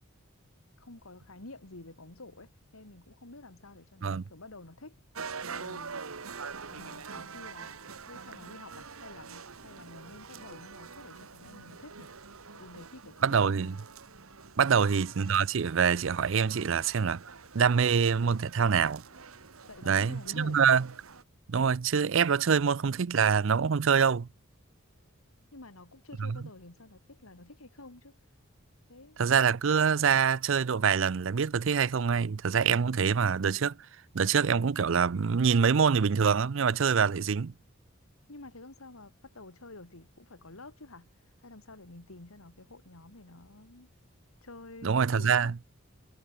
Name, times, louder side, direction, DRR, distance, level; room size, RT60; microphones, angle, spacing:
voice 1, 0.8-5.0 5.5-6.0 6.7-7.8 8.1-12.1 12.5-13.8 14.6-14.8 19.7-20.7 25.5-28.2 28.9-29.2 38.3-41.1 41.4-43.9 44.4-45.5, left 2 dB, 90° left, 2.5 m, -50 dB
sound 1, 5.1-21.2, right 5 dB, 90° right, 1.5 m, -45 dB
voice 2, 13.2-13.8 14.6-17.2 17.5-19.0 19.9-20.8 21.5-24.3 26.2-26.4 29.2-33.8 34.1-37.5 44.8-45.5, right 6 dB, 65° right, 0.5 m, -25 dB
head